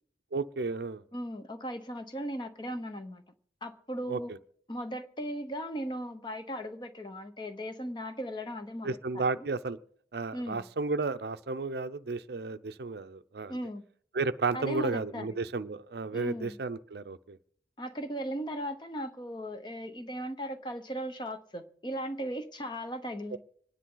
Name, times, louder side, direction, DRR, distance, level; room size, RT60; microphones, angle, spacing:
voice 1, 0.3-1.0 4.1-4.4 8.8-9.8 10.1-13.6 14.1-17.4 23.3-23.4, right 3 dB, 65° right, 12 dB, 0.6 m, -33 dB
voice 2, 1.1-3.2 3.6-4.3 4.7-9.4 10.3-10.7 13.5-13.9 14.5-15.3 16.1-16.6 17.8-23.4, equal, 25° left, 8 dB, 0.9 m, -37 dB
26.5 x 10.0 x 3.9 m, 0.62 s
head